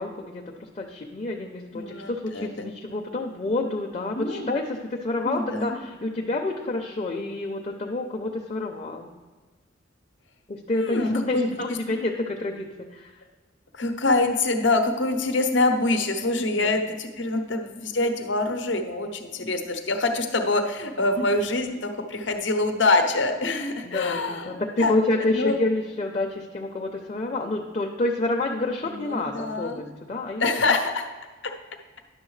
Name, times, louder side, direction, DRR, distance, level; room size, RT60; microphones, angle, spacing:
voice 1, 0.0-9.1 10.5-13.2 16.5-16.7 23.8-30.6, left 2 dB, 35° left, 0 dB, 0.6 m, -28 dB
voice 2, 1.7-2.7 4.1-4.5 5.2-5.8 10.7-11.8 13.7-24.9 25.3-25.6 28.8-29.8 30.4-31.1 31.4-31.5, left 2 dB, 75° left, 6 dB, 0.9 m, -25 dB
10.5 x 7.1 x 3.2 m, 1.3 s
head